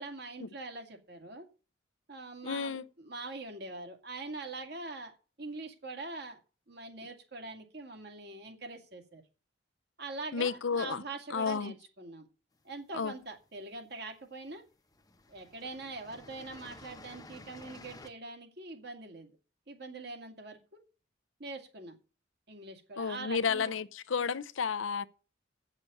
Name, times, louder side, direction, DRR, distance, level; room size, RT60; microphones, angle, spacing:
voice 1, 0.0-1.5 2.1-6.4 6.7-9.2 10.0-12.3 12.6-14.6 15.3-19.3 19.7-20.8 21.4-22.0 22.5-23.7, right 3 dB, 55° right, 2.3 m, -43 dB
voice 2, 2.4-2.8 10.3-11.0 11.3-11.7 12.9-13.1 23.0-25.0, left 6 dB, 85° left, 0.6 m, -32 dB
sound 1, 12.7-13.6 14.5-14.6 14.9-18.1, left 2 dB, 20° left, 0.9 m, -52 dB
8.4 x 6.8 x 8.4 m
head